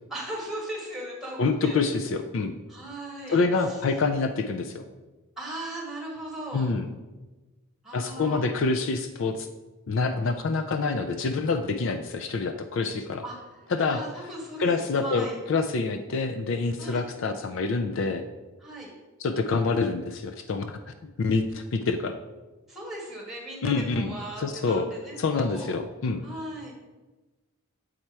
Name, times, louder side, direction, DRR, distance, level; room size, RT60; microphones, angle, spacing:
voice 1, 0.1-1.8 2.7-3.8 5.4-6.7 7.8-8.5 13.2-15.4 16.8-17.0 18.6-18.9 22.7-25.7 26.2-26.7, right 1 dB, ahead, -3 dB, 1.6 m, -38 dB
voice 2, 1.4-2.5 3.3-4.8 6.5-6.9 7.9-9.5 9.9-13.2 13.7-14.0 14.6-18.2 19.2-22.1 23.6-24.1 24.4-24.9 25.2-26.2, left 4 dB, 55° left, 7 dB, 0.4 m, -26 dB
7.9 x 4.3 x 4.6 m, 1.2 s
head